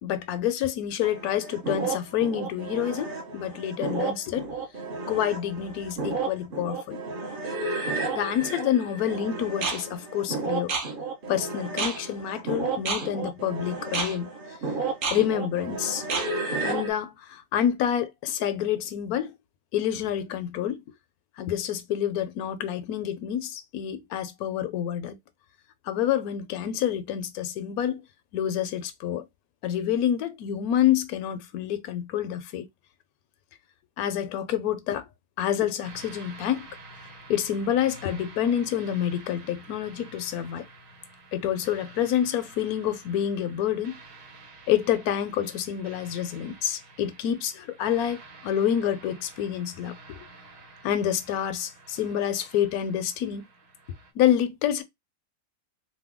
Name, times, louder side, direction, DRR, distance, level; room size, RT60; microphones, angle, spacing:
voice 1, 0.0-4.4 5.1-7.0 8.1-10.7 11.3-14.3 15.1-16.0 16.6-19.3 19.7-20.8 21.4-25.2 25.9-28.0 28.3-29.2 29.6-32.7 34.0-35.0 35.4-36.7 37.3-40.6 41.3-44.0 44.7-50.2 50.8-53.4 54.2-54.8, left 10 dB, 85° left, 1.1 m, -27 dB
sound 1, 1.0-16.9, right 4 dB, 50° right, 0.7 m, -31 dB
sound 2, 35.8-54.1, right 3 dB, 90° right, 1.3 m, -49 dB
3.0 x 2.1 x 3.4 m
omnidirectional pair, 1.5 m